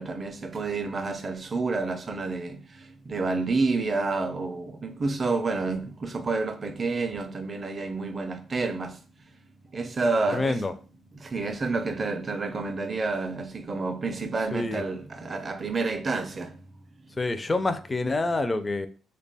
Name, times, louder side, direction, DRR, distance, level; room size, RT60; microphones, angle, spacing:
voice 1, 0.0-10.6 11.1-16.8 17.1-17.2, right 3 dB, 35° right, 0.4 m, -29 dB
voice 2, 10.3-10.7 14.5-14.8 17.2-18.9, left 2 dB, 25° left, 0.4 m, -27 dB
3.2 x 2.2 x 3.9 m
cardioid pair, 90°, 0 cm